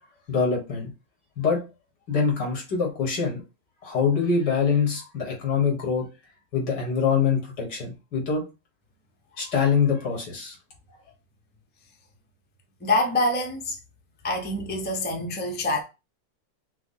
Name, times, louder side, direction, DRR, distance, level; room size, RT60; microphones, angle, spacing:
voice 1, 0.3-0.9 1.4-1.6 2.1-3.4 3.8-6.1 6.5-8.4 9.4-10.6, left 6 dB, 75° left, 2.2 m, -24 dB
voice 2, 12.8-13.8 14.2-15.8, left 2 dB, 15° left, 0.3 m, -25 dB
5.8 x 2.0 x 3.9 m
omnidirectional pair, 1.8 m